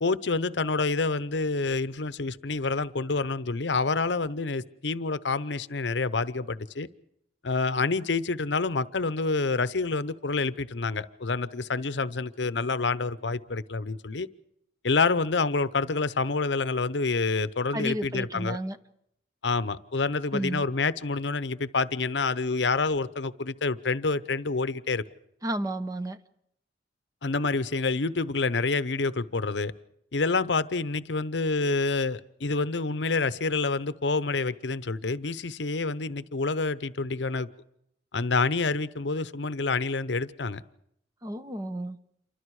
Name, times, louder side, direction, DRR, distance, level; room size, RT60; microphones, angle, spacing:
voice 1, 0.0-6.9 7.4-14.3 14.8-18.6 19.4-25.0 27.2-29.7 30.1-37.5 38.1-40.6, left 3 dB, 70° left, 0.8 m, -27 dB
voice 2, 17.7-18.8 20.3-20.7 25.4-26.2 41.2-42.0, right 1 dB, 20° right, 0.9 m, -32 dB
28.5 x 24.5 x 4.9 m
head